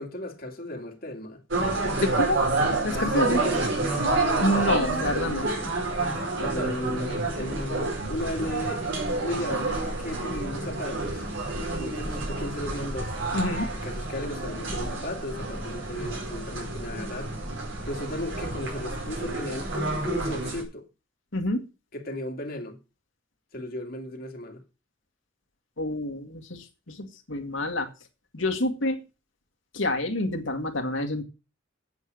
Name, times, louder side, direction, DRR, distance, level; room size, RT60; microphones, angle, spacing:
voice 1, 0.0-1.4 2.9-4.5 6.0-8.8 9.2-11.3 11.8-13.2 13.8-17.4 17.8-20.9 21.9-22.8 23.5-24.6, left 1 dB, 50° left, 2.4 m, -35 dB
sound 1, 1.5-20.6, right 2 dB, 70° right, 4.8 m, -29 dB
voice 2, 2.0-2.4 2.8-3.4 4.4-5.5 13.3-13.7 21.3-21.6 25.8-27.9 28.3-29.0 29.7-31.2, left 1 dB, 80° left, 2.1 m, -27 dB
8.7 x 8.2 x 6.4 m
head